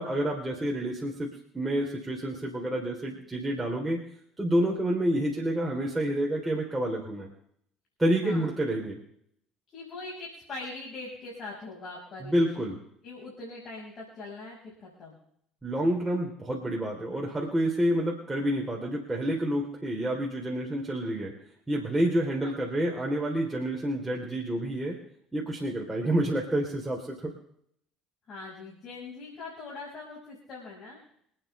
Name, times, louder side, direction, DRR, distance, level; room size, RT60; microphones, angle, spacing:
voice 1, 0.0-4.0 4.4-7.3 8.0-9.0 12.2-12.8 15.6-21.3 21.7-25.0 25.3-27.3, right 1 dB, 10° right, -3 dB, 3.6 m, -28 dB
voice 2, 9.7-12.7 13.0-15.2 22.4-22.6 28.3-31.0, left 3 dB, 45° left, -3 dB, 5.5 m, -42 dB
26.5 x 9.1 x 3.4 m, 0.70 s
figure-of-eight pair, 60°, 0 cm